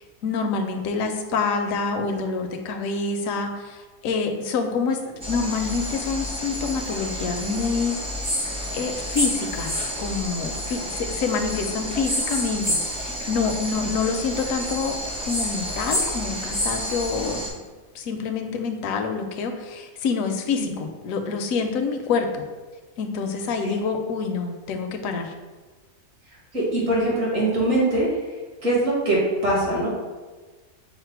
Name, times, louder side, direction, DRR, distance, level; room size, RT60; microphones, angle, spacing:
voice 1, 0.2-5.0 5.2-8.4 8.7-17.6 17.9-22.4 23.0-25.3, left 5 dB, 75° left, 5 dB, 0.9 m, -27 dB
sound 1, 5.2-17.5, equal, 5° right, 0.5 m, -29 dB
voice 2, 26.5-28.1 28.6-29.9, right 1 dB, 65° right, -5 dB, 1.9 m, -22 dB
5.6 x 2.1 x 4.5 m, 1.3 s
omnidirectional pair, 1.5 m